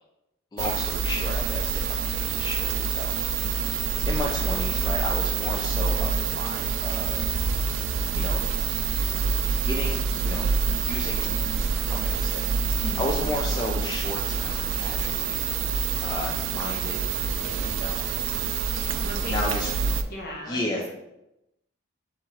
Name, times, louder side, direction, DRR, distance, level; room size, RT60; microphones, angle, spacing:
voice 1, 0.5-3.7 4.0-7.4 8.1-8.4 9.5-10.5 10.8-11.4 11.8-12.5 13.0-15.4 16.0-17.1 17.4-19.7 20.4-20.9, left 1 dB, 20° left, -2 dB, 0.4 m, -33 dB
sound 1, 0.6-20.0, right 5 dB, 75° right, 0.3 m, -27 dB
voice 2, 19.0-19.4 20.1-20.9, left 1 dB, 50° left, -1 dB, 1.0 m, -36 dB
3.5 x 3.0 x 4.4 m, 0.88 s
head